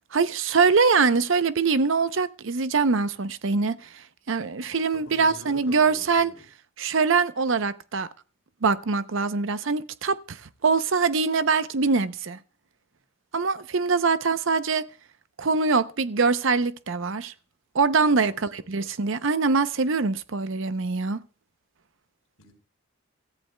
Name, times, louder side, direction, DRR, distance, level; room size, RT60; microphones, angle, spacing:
voice 1, 0.1-6.3 6.8-8.1 8.6-12.4 13.3-14.8 15.4-17.3 17.7-21.2, right 4 dB, 60° right, 0.6 m, -23 dB
voice 2, 4.9-6.4 18.2-18.9 22.4-22.5, left 1 dB, 70° left, 3.4 m, -46 dB
26.5 x 14.0 x 2.2 m
head